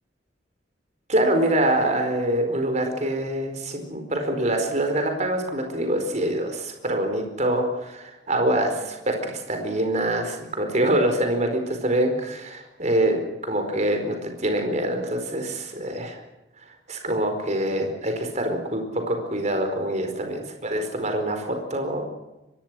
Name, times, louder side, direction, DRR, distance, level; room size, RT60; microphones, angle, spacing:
voice 1, 1.1-16.2 16.9-22.0, right 1 dB, 40° right, 5 dB, 4.6 m, -25 dB
24.5 x 21.0 x 6.3 m, 0.98 s
head